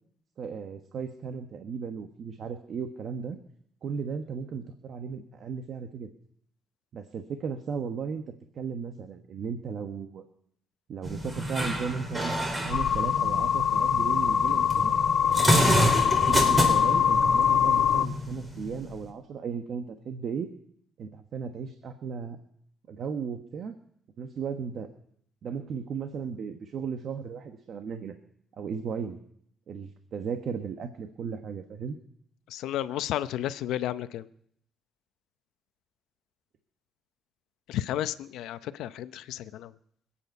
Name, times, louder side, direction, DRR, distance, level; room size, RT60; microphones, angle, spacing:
voice 1, 0.4-3.4 3.8-6.1 6.9-8.2 8.5-10.2 10.9-12.4 12.6-14.9 15.4-15.8 16.3-20.5 21.0-22.4 22.9-23.7 24.2-24.9 25.4-28.1 28.6-29.2 29.7-32.0, right 6 dB, 60° right, 7 dB, 1.2 m, -35 dB
sound 1, 11.0-19.1, right 1 dB, 20° right, 4.1 m, -29 dB
sound 2, 12.7-18.1, left 8 dB, 65° left, 1.0 m, -23 dB
voice 2, 32.5-34.3 37.7-39.7, left 12 dB, 90° left, 13 dB, 0.7 m, -32 dB
26.0 x 9.0 x 5.5 m, 0.68 s
cardioid pair, 90°, 0 cm